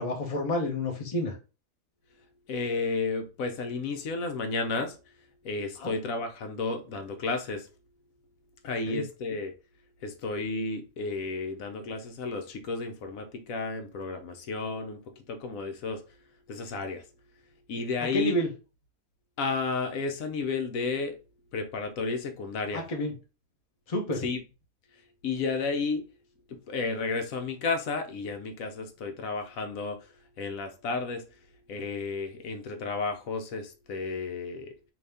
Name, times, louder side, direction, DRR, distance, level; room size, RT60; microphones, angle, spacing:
voice 1, 0.0-1.3 5.8-5.9 8.9-9.0 18.1-18.5 22.7-23.1 23.9-24.3, left 1 dB, 30° left, 0.8 m, -29 dB
voice 2, 2.5-5.0 5.4-7.7 8.6-9.5 10.0-15.0 15.3-16.0 16.5-17.0 17.7-18.4 19.4-21.2 21.5-22.8 24.2-24.4 25.2-26.0 26.5-30.0 30.4-31.2 31.7-34.7, left 4 dB, 75° left, 1.1 m, -32 dB
3.9 x 2.8 x 3.3 m
omnidirectional pair, 1.5 m